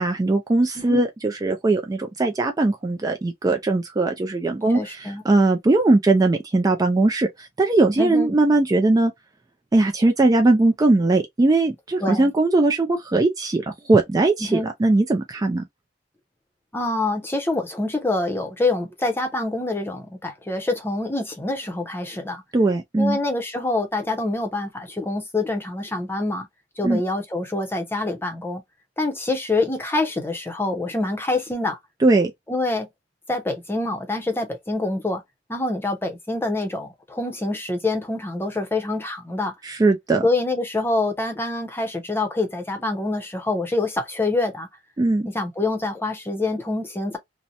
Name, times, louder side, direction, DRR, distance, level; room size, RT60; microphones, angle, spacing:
voice 1, 0.0-9.1 9.7-15.6 22.5-23.2 26.8-27.0 32.0-32.3 39.6-40.2 45.0-45.3, right 2 dB, 20° right, 0.3 m, -20 dB
voice 2, 4.7-5.2 8.0-8.3 12.0-12.3 14.4-14.7 16.7-22.4 23.0-26.5 26.8-28.6 29.0-31.8 32.5-32.9 33.3-35.2 35.5-39.5 40.2-44.7 45.2-47.2, left 2 dB, 15° left, 0.7 m, -26 dB
2.8 x 2.1 x 2.5 m
head